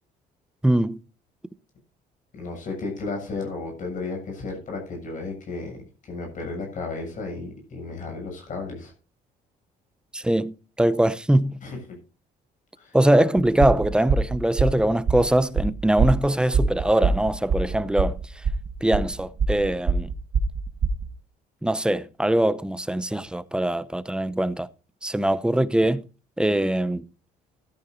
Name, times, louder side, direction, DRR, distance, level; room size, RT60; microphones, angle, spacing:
voice 1, 0.6-1.0 10.1-11.6 12.9-18.2 18.8-20.1 21.6-24.7 25.0-26.0 26.4-27.0, right 1 dB, 5° right, 0.7 m, -22 dB
voice 2, 2.4-5.8 6.0-8.9 11.6-11.8 12.8-13.0, left 3 dB, 50° left, 7.3 m, -33 dB
sound 1, 13.4-21.1, right 4 dB, 40° right, 1.3 m, -24 dB
14.0 x 14.0 x 2.7 m
cardioid pair, 110°, 17 cm